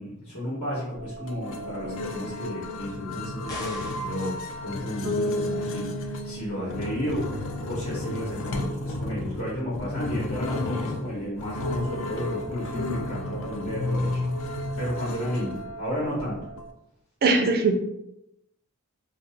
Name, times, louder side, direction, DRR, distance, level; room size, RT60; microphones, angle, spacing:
voice 1, 0.0-14.2 14.8-16.4, equal, 75° left, -7 dB, 1.0 m, -32 dB
sound 1, 0.9-16.7, left 2 dB, 60° left, 0.4 m, -33 dB
sound 2, 3.5-4.2, left 1 dB, 15° left, 0.6 m, -38 dB
Bass guitar, 5.0-8.9, left 1 dB, 80° right, 0.9 m, -34 dB
voice 2, 17.2-17.8, right 3 dB, 45° right, 4 dB, 0.4 m, -20 dB
2.5 x 2.3 x 3.4 m, 0.85 s
head